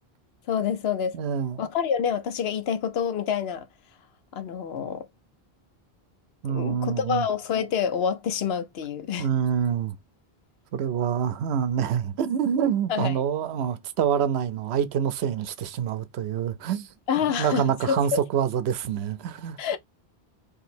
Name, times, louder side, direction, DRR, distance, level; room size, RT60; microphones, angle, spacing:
voice 1, 0.5-1.1 1.6-3.7 4.3-5.0 6.5-9.3 12.9-13.2 17.1-18.0 19.6-19.8, left 7 dB, 75° left, 0.9 m, -27 dB
voice 2, 1.1-1.6 6.4-7.3 9.2-10.0 10.7-16.9 17.4-19.6, right 8 dB, 85° right, 0.8 m, -26 dB
2.8 x 2.7 x 4.2 m
omnidirectional pair, 1.1 m